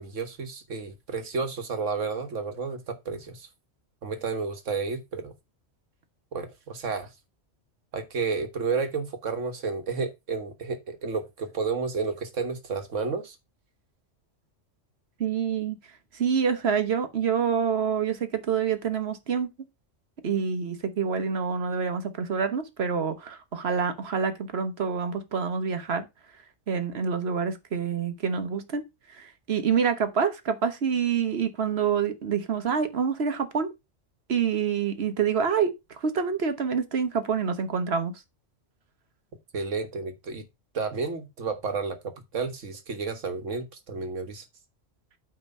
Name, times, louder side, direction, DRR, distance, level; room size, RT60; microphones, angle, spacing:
voice 1, 0.0-3.5 4.0-5.3 6.3-7.1 7.9-13.4 39.5-40.4 40.7-44.4, right 4 dB, 80° right, 1.7 m, -31 dB
voice 2, 15.2-15.8 16.1-19.5 20.2-26.0 26.7-28.8 29.1-33.7 34.3-38.1, right 6 dB, 60° right, 1.3 m, -27 dB
9.1 x 3.6 x 5.4 m
omnidirectional pair, 1.3 m